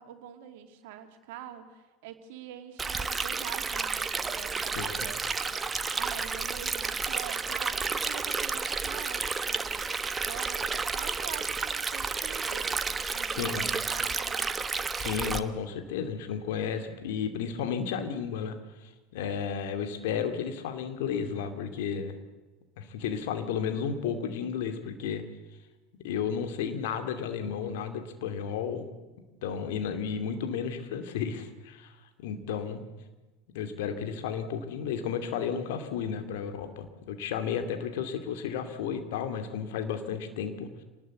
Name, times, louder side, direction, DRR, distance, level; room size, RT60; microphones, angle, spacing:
voice 1, 0.0-9.7 10.2-14.5, right 10 dB, 60° right, 6 dB, 2.8 m, -45 dB
Stream, 2.8-15.4, right 4 dB, 20° right, 1.3 m, -31 dB
voice 2, 4.7-5.1 13.3-13.6 15.0-22.1 22.8-25.2 26.0-28.9 29.4-32.0 32.2-32.8 33.5-40.8, left 7 dB, 65° left, 7 dB, 2.6 m, -33 dB
27.0 x 19.5 x 8.2 m, 1.2 s
figure-of-eight pair, 70°, 0 cm